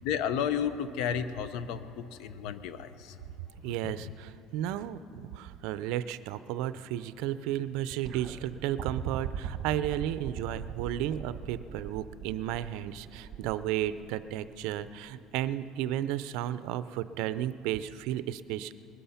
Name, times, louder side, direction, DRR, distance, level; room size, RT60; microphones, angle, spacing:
voice 1, 0.0-3.2 3.6-4.1, left 8 dB, 70° left, 12 dB, 0.8 m, -33 dB
voice 2, 3.6-18.7, right 12 dB, 75° right, 14 dB, 0.5 m, -33 dB
sound 1, 8.1-15.2 16.3-16.4, right 9 dB, 50° right, 1.4 m, -40 dB
20.5 x 12.5 x 5.7 m, 2.9 s
cardioid pair, 140°, 0 cm